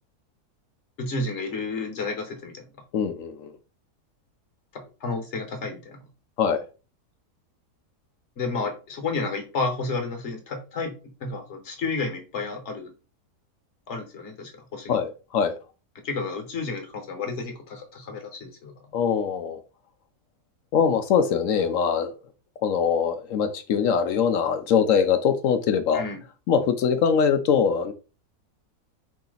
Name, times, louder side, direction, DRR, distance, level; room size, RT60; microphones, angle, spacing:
voice 1, 1.0-2.6 4.7-6.0 8.4-10.9 11.2-12.9 13.9-15.0 16.0-18.7 25.9-26.2, left 3 dB, 50° left, 1.3 m, -31 dB
voice 2, 2.9-3.5 6.4-6.6 14.9-15.5 18.9-19.6 20.7-22.1 22.6-26.0 26.5-27.9, left 7 dB, 65° left, 0.9 m, -22 dB
4.9 x 2.8 x 3.9 m
omnidirectional pair, 1.7 m